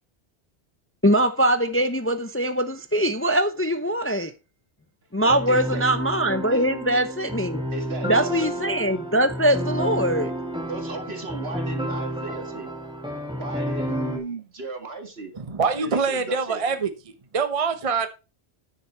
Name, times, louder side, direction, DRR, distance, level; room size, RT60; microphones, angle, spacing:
voice 1, 1.0-4.3 5.1-7.7 8.0-10.3, right 1 dB, 15° left, 0.6 m, -22 dB
voice 2, 5.2-5.8 6.5-6.7 7.7-8.4 10.7-12.8 13.4-16.8, right 3 dB, 65° right, 2.1 m, -36 dB
sound 1, 5.3-14.2, equal, 5° right, 1.8 m, -30 dB
voice 3, 15.4-18.1, right 5 dB, 35° right, 0.9 m, -25 dB
10.5 x 6.6 x 4.5 m
omnidirectional pair, 1.1 m